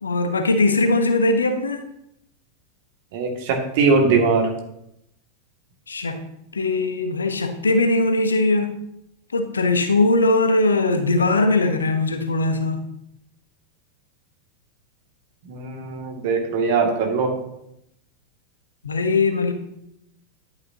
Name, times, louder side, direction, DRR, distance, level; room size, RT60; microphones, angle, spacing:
voice 1, 0.0-1.8 5.9-6.2 6.5-8.7 9.3-12.8 18.8-19.5, left 2 dB, 75° left, 8 dB, 1.0 m, -20 dB
voice 2, 3.1-4.5 15.5-17.3, right 4 dB, 50° right, 2 dB, 2.2 m, -21 dB
11.0 x 9.2 x 2.8 m, 0.81 s
figure-of-eight pair, 90°, 0 cm